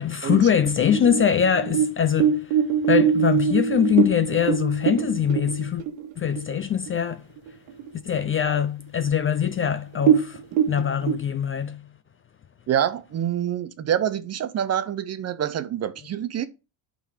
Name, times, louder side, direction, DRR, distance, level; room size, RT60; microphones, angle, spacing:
voice 1, 0.0-2.5 2.9-5.9 6.2-7.2 8.0-10.4 10.7-11.9, left 8 dB, 30° left, 0.4 m, -23 dB
sound 1, 0.7-6.5 6.9-7.0 7.4-7.9 8.3-8.4 9.1-9.2 9.4-9.6 9.9-11.1, right 8 dB, 85° right, 1.7 m, -22 dB
voice 2, 12.7-16.5, right 9 dB, 30° right, 0.5 m, -26 dB
11.0 x 3.9 x 4.8 m
cardioid pair, 140°, 49 cm